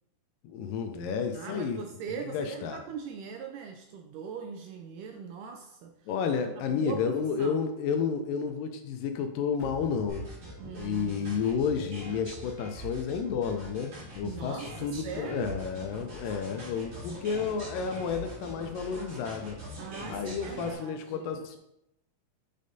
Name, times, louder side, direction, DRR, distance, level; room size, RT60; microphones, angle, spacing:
voice 1, 0.5-1.8 2.1-2.8 6.1-10.3 10.6-19.6 20.1-21.6, left 6 dB, 80° left, 6 dB, 2.1 m, -31 dB
voice 2, 1.3-5.9 6.4-7.6 10.6-11.2 14.2-15.6 19.8-21.3, right 6 dB, 80° right, 3 dB, 1.9 m, -41 dB
sound 1, 9.6-12.7, right 1 dB, 55° left, 1.4 m, -50 dB
sound 2, 10.1-20.7, right 1 dB, 50° right, 2.9 m, -43 dB
7.5 x 5.0 x 2.7 m, 0.82 s
omnidirectional pair, 4.1 m